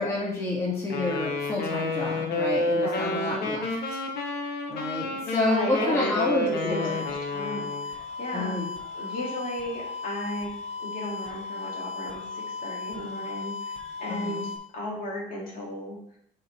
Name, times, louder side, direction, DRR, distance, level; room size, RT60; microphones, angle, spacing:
voice 1, 0.0-3.7 4.7-6.9 8.3-8.7 14.1-14.4, left 2 dB, 15° left, -6 dB, 2.0 m, -29 dB
Wind instrument woodwind instrument, 0.9-7.9, left 2 dB, 75° left, 1.1 m, -29 dB
voice 2, 2.7-3.2 5.4-6.1 6.4-8.5 8.9-10.5 10.8-16.0, left 1 dB, 55° left, -4 dB, 2.7 m, -35 dB
sound 1, 6.7-14.6, left 4 dB, 40° left, 1.8 m, -36 dB
7.3 x 4.6 x 3.3 m, 0.71 s
cardioid pair, 110°, 17 cm